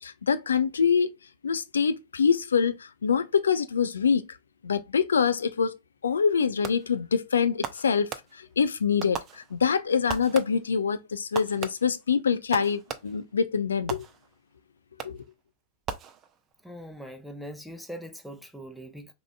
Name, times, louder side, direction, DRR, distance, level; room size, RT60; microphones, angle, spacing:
voice 1, 0.0-1.1 1.4-4.4 4.6-5.8 6.0-14.0 15.0-15.2, left 6 dB, 70° left, 0.5 m, -25 dB
Fireworks, 6.6-7.1 7.6-8.6 9.0-9.8 10.1-10.8 11.4-13.3 13.9-14.5 15.0-15.4 15.9-16.6, right 7 dB, 30° right, 0.5 m, -38 dB
voice 2, 16.6-19.1, equal, ahead, 0.8 m, -41 dB
4.9 x 3.5 x 2.3 m
figure-of-eight pair, 90°, 0 cm